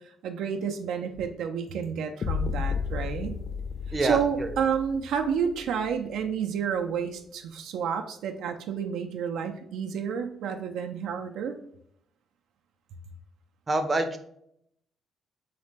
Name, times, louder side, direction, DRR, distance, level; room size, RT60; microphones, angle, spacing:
voice 1, 0.2-3.4 4.0-11.5, right 7 dB, 85° right, 5 dB, 0.4 m, -30 dB
sound 1, 2.2-6.2, left 6 dB, 50° left, 0.3 m, -33 dB
voice 2, 3.9-4.5 13.7-14.2, right 2 dB, 30° right, 7 dB, 0.5 m, -26 dB
3.9 x 3.2 x 3.3 m, 0.71 s
cardioid pair, 90°, 0 cm